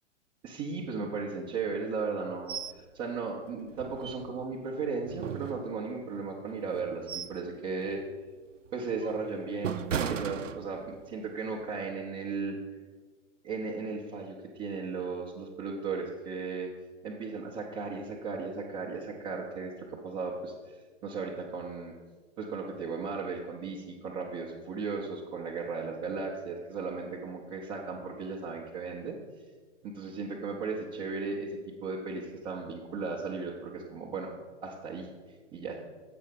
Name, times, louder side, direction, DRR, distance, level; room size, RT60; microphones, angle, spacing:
voice 1, 0.4-8.0 8.7-9.8 10.1-12.6 13.4-16.7 17.0-21.9 22.4-29.2 29.8-34.3 34.6-35.1 35.5-35.8, right 4 dB, 15° right, -3 dB, 0.5 m, -36 dB
sound 1, 2.5-2.8 3.2-3.3 3.7-4.6 5.1-6.1 6.7-7.5 7.9-8.1 8.7-11.1 11.5-11.7, right 7 dB, 90° right, 0.5 m, -36 dB
7.6 x 5.4 x 5.2 m, 1.4 s
figure-of-eight pair, 120°, 37 cm